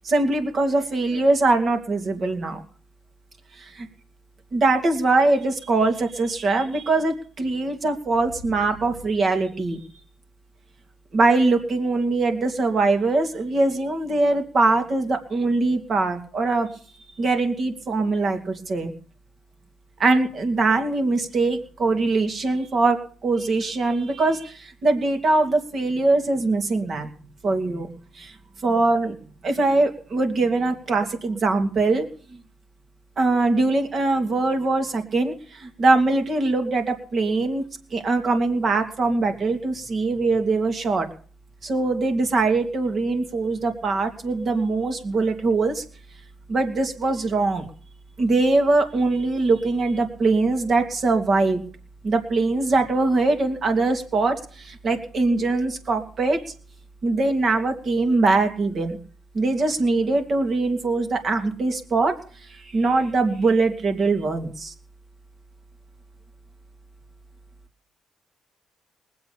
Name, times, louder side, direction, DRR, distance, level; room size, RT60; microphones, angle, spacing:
voice 1, 0.0-2.6 3.6-3.9 4.5-9.8 11.1-16.7 17.2-18.9 20.0-23.0 23.2-27.1 27.4-27.9 28.2-28.3 28.6-29.1 29.4-32.1 33.2-37.6 37.9-41.1 41.6-45.8 46.5-47.7 48.2-51.6 52.0-56.4 57.0-59.0 59.3-62.1 62.5-64.7, right 3 dB, 50° right, 5 dB, 2.8 m, -22 dB
20.0 x 8.0 x 7.2 m, 0.42 s
cardioid pair, 90°, 0 cm